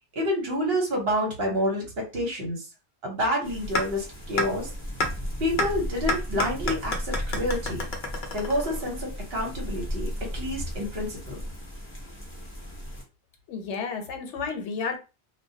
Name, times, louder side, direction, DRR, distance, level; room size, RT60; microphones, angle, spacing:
voice 1, 0.1-2.7 3.0-4.7 5.4-7.8 8.3-11.4, equal, 60° right, 1.1 m, -28 dB
sound 1, 3.4-13.0, equal, 15° left, 0.6 m, -35 dB
sound 2, 3.8-3.9 4.4-4.5 5.0-5.1 5.6-5.7 6.1-9.0, left 1 dB, 55° left, 0.6 m, -27 dB
voice 2, 13.5-15.0, left 5 dB, 90° left, 0.9 m, -31 dB
2.2 x 2.2 x 2.6 m
omnidirectional pair, 1.2 m